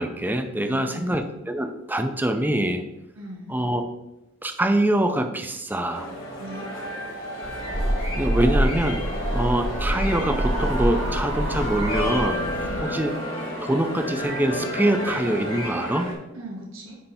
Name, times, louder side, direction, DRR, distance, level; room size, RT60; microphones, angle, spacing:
voice 1, 0.0-2.8 3.5-3.8 4.4-6.1 8.2-9.0 9.3-12.4 12.8-13.1 13.6-16.1, right 1 dB, 10° right, 6 dB, 0.5 m, -24 dB
voice 2, 0.6-1.2 3.2-3.7 6.4-6.7 12.6-12.9 16.3-17.0, right 1 dB, 90° right, -3 dB, 1.8 m, -38 dB
sound 1, 5.9-16.1, equal, 85° left, 2.4 m, -31 dB
sound 2, 7.4-12.8, equal, 65° right, 1.5 m, -26 dB
9.5 x 3.4 x 4.2 m, 0.93 s
head